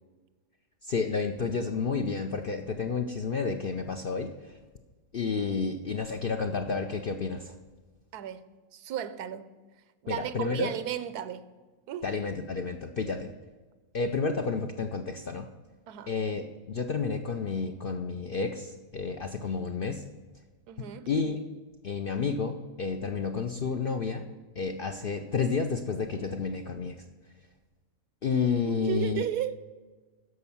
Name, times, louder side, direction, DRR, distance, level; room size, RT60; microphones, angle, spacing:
voice 1, 0.8-4.6 5.1-7.6 10.1-10.7 12.0-13.3 13.9-15.5 16.1-20.0 20.8-21.4 21.8-24.3 24.6-27.0 28.2-29.3, left 5 dB, 60° left, 0.6 m, -30 dB
voice 2, 8.1-9.6 10.0-11.5 11.9-12.1 15.9-16.1 20.7-21.1 28.6-29.6, right 10 dB, 85° right, 1.2 m, -34 dB
13.0 x 5.4 x 7.0 m
omnidirectional pair, 1.6 m